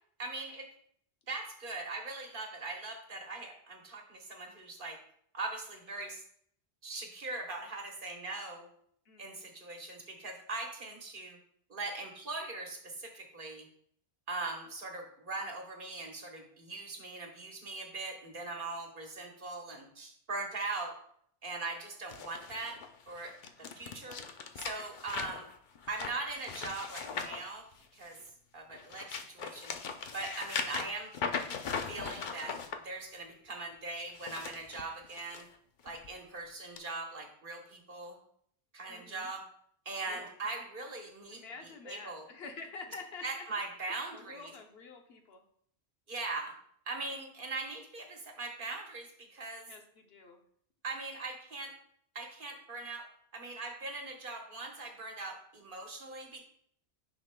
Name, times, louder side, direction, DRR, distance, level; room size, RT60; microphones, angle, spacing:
voice 1, 0.2-0.7 1.3-5.0 5.3-6.2 6.8-8.7 9.2-11.4 11.7-13.7 14.3-20.9 21.4-22.8 23.1-24.2 24.6-25.5 25.9-27.6 27.9-28.2 28.5-29.7 30.1-31.1 31.9-32.6 32.8-35.4 35.8-38.2 38.7-39.4 39.8-42.3 43.2-44.5 46.1-46.6 46.9-49.7 50.8-51.7 52.1-53.1 53.3-56.4, right 3 dB, 55° right, 2 dB, 1.3 m, -40 dB
voice 2, 9.1-9.5 23.6-24.0 38.9-39.3 40.1-40.3 41.3-43.6 43.9-45.4 49.7-50.4, left 4 dB, 75° left, 5 dB, 1.0 m, -48 dB
sound 1, 22.1-28.2 28.7-32.8 34.0-35.4 35.9-36.1 36.8-36.9, left 5 dB, 55° left, 0.7 m, -39 dB
9.5 x 5.9 x 2.2 m, 0.66 s
omnidirectional pair, 1.1 m